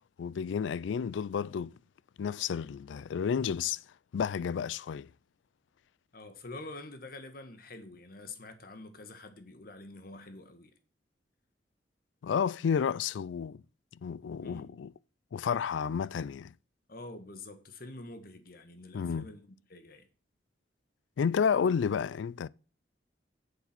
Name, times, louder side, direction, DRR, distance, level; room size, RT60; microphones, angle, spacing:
voice 1, 0.2-1.7 2.2-3.8 4.1-5.1 12.2-13.6 13.9-14.9 15.3-16.5 18.9-19.3 21.2-22.5, left 7 dB, 85° left, 0.3 m, -31 dB
voice 2, 6.1-10.7 14.4-14.7 16.9-20.1, left 2 dB, 50° left, 1.5 m, -47 dB
7.7 x 7.3 x 5.9 m
head